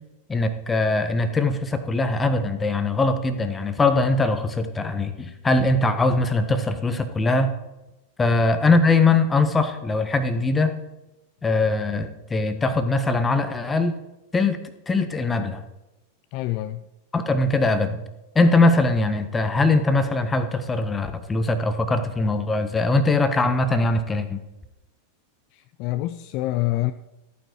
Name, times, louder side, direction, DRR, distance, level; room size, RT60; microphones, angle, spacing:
voice 1, 0.3-7.5 8.2-10.7 11.4-13.9 14.3-14.6 14.9-15.6 17.1-18.0 18.3-24.4, left 2 dB, 15° left, 9 dB, 1.3 m, -21 dB
voice 2, 16.3-16.9 25.5-26.9, left 16 dB, 45° left, 12 dB, 0.5 m, -26 dB
14.5 x 9.2 x 4.7 m, 0.99 s
figure-of-eight pair, 90°, 0 cm